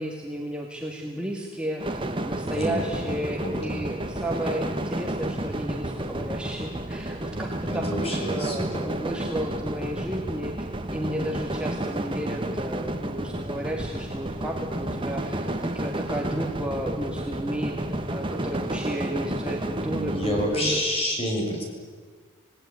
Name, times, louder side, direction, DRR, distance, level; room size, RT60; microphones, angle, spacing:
voice 1, 0.0-10.5 10.9-20.8, equal, 5° right, 0 dB, 2.1 m, -33 dB
sound 1, 1.8-20.6, right 1 dB, 25° right, 1.6 m, -31 dB
voice 2, 2.5-3.8 7.7-8.8 19.8-21.6, equal, 30° left, 0 dB, 6.7 m, -29 dB
27.5 x 18.0 x 9.5 m, 1.5 s
head